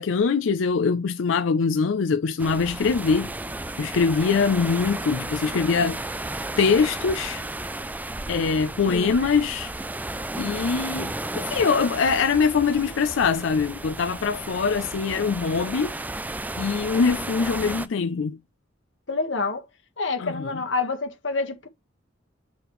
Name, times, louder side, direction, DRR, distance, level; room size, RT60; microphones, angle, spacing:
voice 1, 0.0-3.3 3.8-6.0 6.6-7.4 8.3-9.7 10.4-15.9 16.6-18.4 20.2-20.5, left 5 dB, 90° left, 0.5 m, -23 dB
sound 1, 2.4-17.9, right 2 dB, 10° right, 0.4 m, -33 dB
voice 2, 19.1-19.6 20.0-21.7, left 3 dB, 70° left, 1.4 m, -27 dB
7.9 x 4.9 x 3.1 m
head